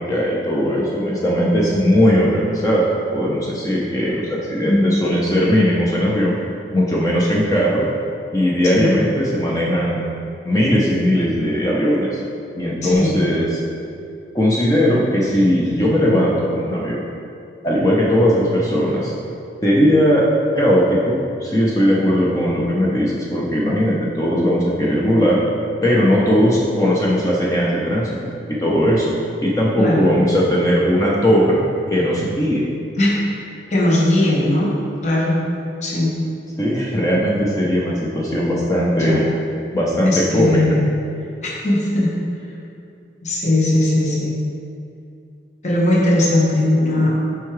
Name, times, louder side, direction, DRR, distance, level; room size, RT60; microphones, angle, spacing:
voice 1, 0.0-6.4 6.7-7.9 8.3-10.0 10.4-12.1 12.6-13.5 14.3-17.0 17.6-19.1 19.6-20.3 20.6-25.4 25.8-28.2 28.5-29.1 29.4-31.6 31.9-32.7 36.6-39.2 39.7-40.8, equal, 20° left, -4 dB, 0.6 m, -18 dB
voice 2, 4.6-5.0 8.7-8.9 12.8-13.1 29.8-30.1 33.0-34.7 35.0-35.4 35.8-36.1 38.9-39.2 40.0-40.9 41.4-42.1 43.2-44.4 45.6-47.2, left 1 dB, 40° left, -4 dB, 1.0 m, -18 dB
8.1 x 4.7 x 3.2 m, 2.5 s
head